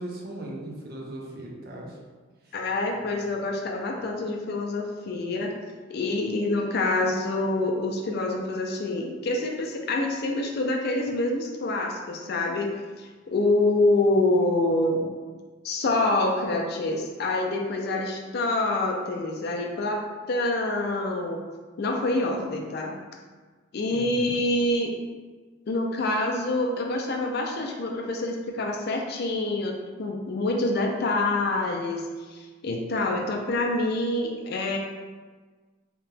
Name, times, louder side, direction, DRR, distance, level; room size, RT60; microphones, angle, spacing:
voice 1, 0.0-2.0 2.4-2.5 23.9-24.3, right 1 dB, 45° right, -2 dB, 0.5 m, -38 dB
voice 2, 2.5-5.5 5.9-15.1 15.6-21.4 21.8-22.9 23.7-24.9 25.7-32.0 32.3-34.8, left 2 dB, 50° left, 1 dB, 0.4 m, -26 dB
2.8 x 2.2 x 3.2 m, 1.4 s
head